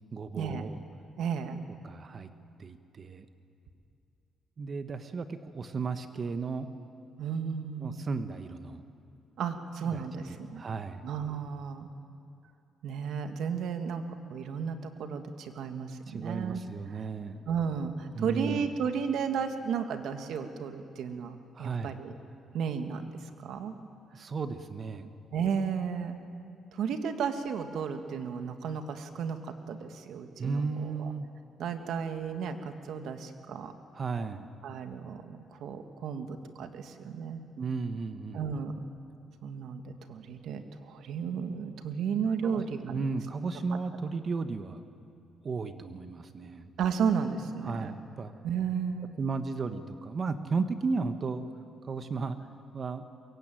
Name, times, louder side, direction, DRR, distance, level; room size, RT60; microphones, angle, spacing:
voice 1, 0.1-0.8 1.8-2.3 2.6-3.3 4.6-6.7 7.8-8.8 9.9-11.0 16.1-17.4 18.1-18.6 21.5-22.0 24.1-25.1 30.4-31.3 33.9-34.5 37.6-38.4 42.4-42.6 42.9-44.8 45.4-46.7 47.6-48.3 49.2-51.4 51.8-52.4 52.7-53.0, right 4 dB, 45° right, 9 dB, 1.5 m, -34 dB
voice 2, 1.2-1.6 7.2-8.1 9.4-10.6 11.0-11.9 12.8-14.0 14.3-16.6 16.9-17.0 17.4-22.1 22.5-23.7 25.3-26.2 26.7-31.1 31.6-33.7 34.6-37.4 38.3-38.9 39.4-43.0 46.8-48.0 48.4-49.1, right 6 dB, 75° right, 7 dB, 1.9 m, -33 dB
23.0 x 22.5 x 9.2 m, 2.6 s
cardioid pair, 90°, 0 cm